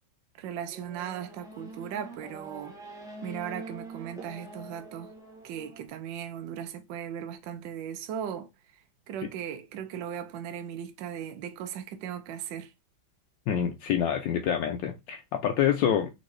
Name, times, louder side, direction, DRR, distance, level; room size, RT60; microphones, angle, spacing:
voice 1, 0.4-2.7 3.2-5.1 5.4-8.5 9.1-12.7, right 9 dB, 75° right, 1.3 m, -37 dB
Race car auto racing / Accelerating revving vroom, 0.7-5.9, right 2 dB, 5° right, 0.5 m, -45 dB
voice 2, 13.5-16.1, left 9 dB, 75° left, 1.3 m, -27 dB
3.9 x 3.5 x 3.2 m
omnidirectional pair, 2.1 m